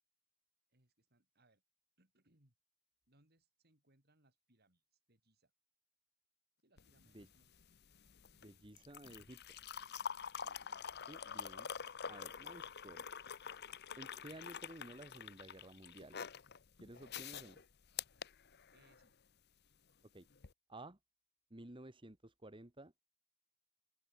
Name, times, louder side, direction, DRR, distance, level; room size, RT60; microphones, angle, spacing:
voice 1, 0.7-1.6 2.0-2.5 3.1-5.5 6.6-7.6 10.3-10.8 11.9-12.1 18.7-19.2, right 1 dB, 45° right, 4.4 m, -74 dB
sound 1, 6.8-19.1 20.3-20.5, left 7 dB, 50° left, 0.9 m, -47 dB
voice 2, 8.4-9.6 11.1-11.7 12.1-13.1 14.0-16.2 16.8-17.6 20.1-20.3 20.7-21.0 21.5-22.9, right 1 dB, 20° right, 1.4 m, -54 dB
open air
head